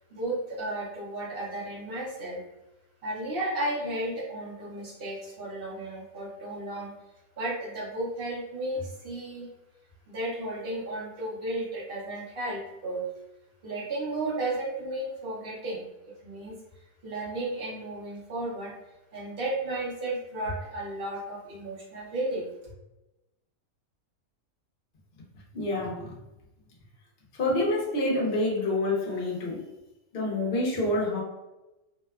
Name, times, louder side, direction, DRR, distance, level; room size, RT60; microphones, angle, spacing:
voice 1, 0.1-2.4 3.0-6.9 7.4-9.5 10.1-13.0 13.6-15.9 16.2-16.6 17.0-18.7 19.1-22.5, right 1 dB, 55° right, -4 dB, 0.7 m, -33 dB
voice 2, 25.5-26.1 27.3-29.7 30.1-31.2, left 2 dB, 50° left, -3 dB, 0.8 m, -27 dB
2.8 x 2.1 x 2.3 m, 0.99 s
omnidirectional pair, 1.5 m